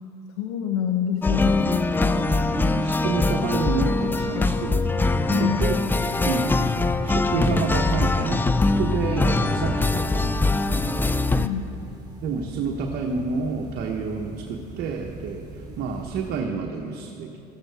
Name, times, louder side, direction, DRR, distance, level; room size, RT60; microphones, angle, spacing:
voice 1, 0.4-1.8 5.2-5.6 11.3-11.7, left 9 dB, 85° left, 4 dB, 0.8 m, -27 dB
sound 1, 1.2-11.5, left 3 dB, 10° left, 0.4 m, -22 dB
sound 2, 1.6-16.4, right 2 dB, 25° right, 3.0 m, -42 dB
voice 2, 2.0-4.9 5.4-5.8 6.2-6.6 7.1-11.1 12.2-17.3, right 5 dB, 60° right, 1 dB, 1.0 m, -29 dB
14.0 x 13.0 x 3.4 m, 2.8 s
supercardioid pair, 85°, 19 cm